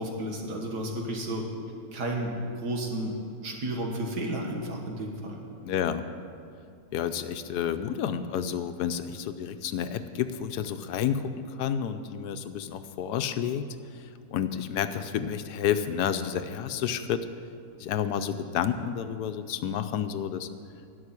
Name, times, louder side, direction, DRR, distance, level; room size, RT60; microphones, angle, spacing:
voice 1, 0.0-1.4 1.9-3.2 3.4-5.4, right 1 dB, 85° right, 1 dB, 2.2 m, -32 dB
voice 2, 5.6-6.0 6.9-13.7 14.3-17.3 17.8-20.5, left 8 dB, 80° left, 10 dB, 1.2 m, -30 dB
11.0 x 7.1 x 9.8 m, 2.4 s
omnidirectional pair, 1.7 m